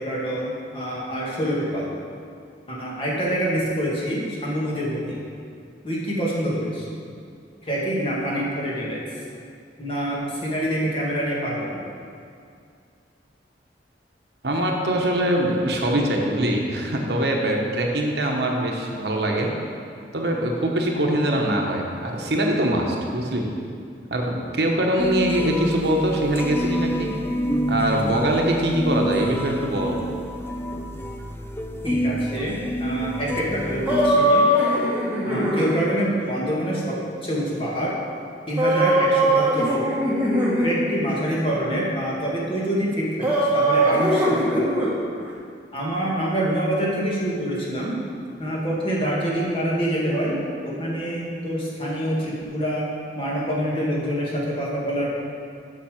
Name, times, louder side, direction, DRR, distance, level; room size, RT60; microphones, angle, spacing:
voice 1, 0.0-1.9 2.7-5.2 5.8-6.9 7.6-9.0 9.8-11.8 31.8-34.5 35.2-37.0 37.2-38.0 38.5-39.9 40.6-44.9 45.7-48.0 48.4-55.1, equal, 30° left, -5 dB, 1.9 m, -26 dB
voice 2, 14.4-19.5 20.1-23.5 24.1-27.1 27.7-30.0, right 1 dB, 65° right, 0 dB, 1.1 m, -23 dB
sound 1, 25.0-34.1, equal, 15° left, 0.4 m, -28 dB
sound 2, 33.9-35.7 38.6-40.8 43.2-44.9, right 1 dB, 10° right, 1.4 m, -20 dB
7.3 x 6.7 x 6.4 m, 2.4 s
head